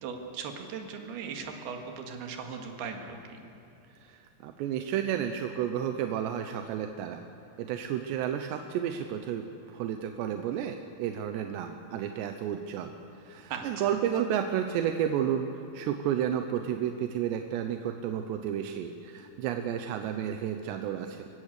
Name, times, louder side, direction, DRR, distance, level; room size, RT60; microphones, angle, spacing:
voice 1, 0.0-3.4 13.5-14.0, right 6 dB, 70° right, 3 dB, 3.6 m, -38 dB
voice 2, 4.0-7.2 7.6-9.5 9.7-15.5 15.7-21.3, right 9 dB, 85° right, 6 dB, 3.0 m, -31 dB
28.0 x 16.0 x 6.7 m, 2.8 s
omnidirectional pair, 4.9 m